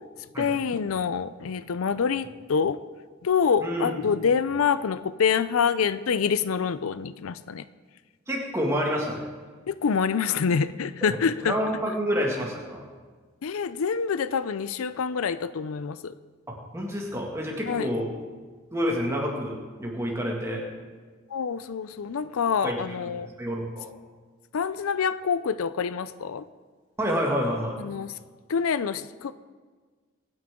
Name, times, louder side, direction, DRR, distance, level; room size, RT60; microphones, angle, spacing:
voice 1, 0.4-2.8 3.2-7.6 9.7-11.6 13.4-16.1 17.6-17.9 21.3-23.3 24.5-26.4 27.8-28.1 28.5-29.3, left 6 dB, 85° left, 15 dB, 0.5 m, -26 dB
voice 2, 3.6-4.0 8.3-9.3 11.0-11.1 11.4-12.8 16.5-18.1 18.7-20.6 22.6-22.8 23.2-23.9 27.0-27.8, equal, 15° right, -1 dB, 2.0 m, -28 dB
23.5 x 9.5 x 3.7 m, 1.4 s
head